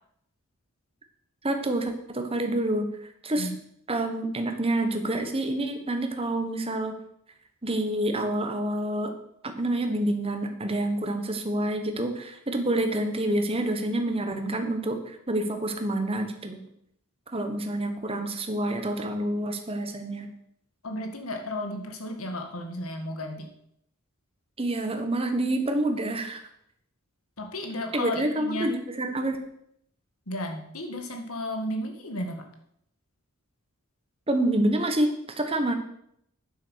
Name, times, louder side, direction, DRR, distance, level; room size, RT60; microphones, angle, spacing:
voice 1, 1.4-3.5 3.9-6.9 7.6-9.1 9.4-16.6 17.3-20.3 24.6-26.4 27.9-29.4 34.3-35.7, right 1 dB, 25° right, 5 dB, 1.3 m, -28 dB
voice 2, 20.8-23.5 27.4-28.7 30.3-32.5, left 1 dB, 85° left, 5 dB, 1.9 m, -33 dB
9.5 x 7.3 x 6.4 m, 0.73 s
head